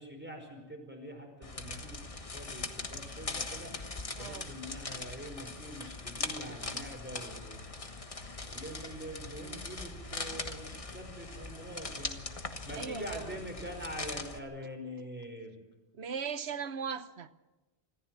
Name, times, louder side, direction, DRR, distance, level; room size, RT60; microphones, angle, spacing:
voice 1, 0.0-3.7 4.2-7.6 8.5-12.2 12.6-15.6, equal, 10° right, 5.1 m, -44 dB
sound 1, 1.4-14.4, left 3 dB, 35° left, 1.4 m, -41 dB
voice 2, 4.2-4.5 12.7-13.4 15.9-17.3, right 6 dB, 80° right, 1.3 m, -38 dB
26.0 x 14.5 x 7.6 m
omnidirectional pair, 1.1 m